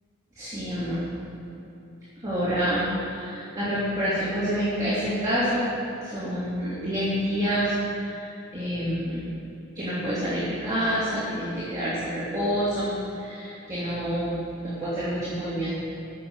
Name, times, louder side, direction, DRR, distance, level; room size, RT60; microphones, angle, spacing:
voice 1, 0.3-1.0 2.2-5.6 6.0-8.3 8.5-9.3 9.7-12.9 13.1-15.7, equal, 15° right, -12 dB, 3.1 m, -27 dB
15.0 x 7.1 x 7.1 m, 2.9 s
head